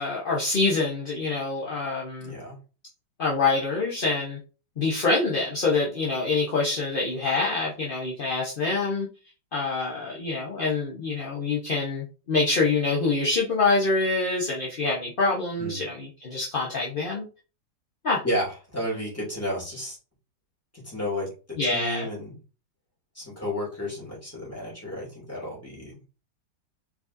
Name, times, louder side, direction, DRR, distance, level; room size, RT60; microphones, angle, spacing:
voice 1, 0.0-2.4 3.2-4.4 4.8-9.1 9.5-17.2 18.0-18.2 21.6-22.1, left 3 dB, 40° left, -4 dB, 0.8 m, -26 dB
voice 2, 2.2-2.6 15.6-15.8 18.2-20.0 20.7-21.3 21.6-22.4 23.1-26.0, left 1 dB, 10° left, -5 dB, 2.6 m, -32 dB
4.8 x 4.1 x 2.6 m, 0.34 s
omnidirectional pair, 2.0 m